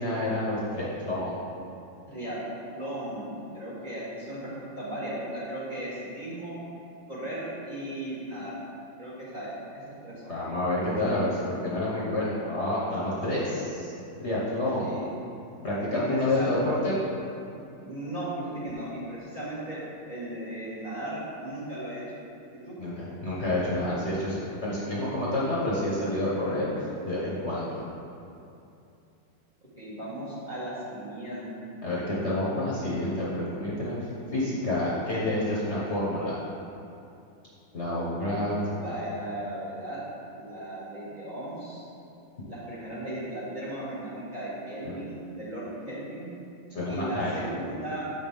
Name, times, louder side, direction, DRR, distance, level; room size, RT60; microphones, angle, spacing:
voice 1, 0.0-1.4 10.3-13.9 14.2-14.9 15.6-17.0 22.8-27.8 31.8-33.9 34.3-36.4 37.7-38.6 38.8-38.9 46.7-47.3, left 1 dB, 40° left, -8 dB, 1.3 m, -28 dB
voice 2, 2.1-2.4 2.7-6.6 7.1-8.5 9.0-10.4 14.8-15.1 15.9-16.5 17.8-19.8 20.1-22.0 22.5-22.8 29.8-31.5 38.8-40.0 40.3-41.8 42.4-46.3 46.9-48.1, right 1 dB, 25° right, -9 dB, 1.8 m, -36 dB
7.4 x 5.8 x 3.6 m, 2.7 s
omnidirectional pair, 2.0 m